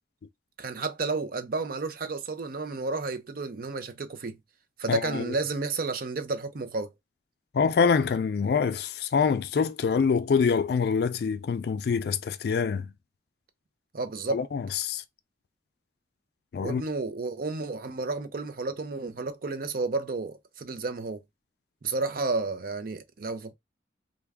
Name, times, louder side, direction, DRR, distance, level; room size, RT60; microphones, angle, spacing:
voice 1, 0.6-4.4 4.8-6.9 13.9-14.5 16.6-21.2 21.8-23.5, right 3 dB, 50° right, 0.5 m, -31 dB
voice 2, 4.9-5.2 7.5-12.9 14.3-15.0 16.5-16.8, left 5 dB, 60° left, 0.3 m, -25 dB
3.4 x 2.2 x 3.4 m
head